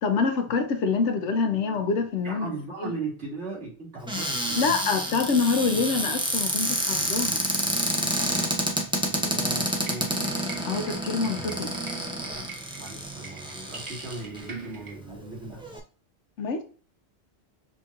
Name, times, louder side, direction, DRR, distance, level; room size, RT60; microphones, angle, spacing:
voice 1, 0.0-2.5 2.8-2.9 4.5-7.5 10.7-11.7 16.4-16.6, left 4 dB, 80° left, 1.0 m, -26 dB
voice 2, 2.2-4.6 9.1-10.3 12.3-12.4 12.8-15.6, right 3 dB, 75° right, 2.3 m, -38 dB
Cupboard open or close, 4.1-14.4 15.1-15.2 15.4-15.8, equal, 5° right, 0.5 m, -29 dB
sound 1, 9.7-15.0, right 4 dB, 55° right, 1.4 m, -44 dB
6.0 x 2.9 x 2.4 m
omnidirectional pair, 1.2 m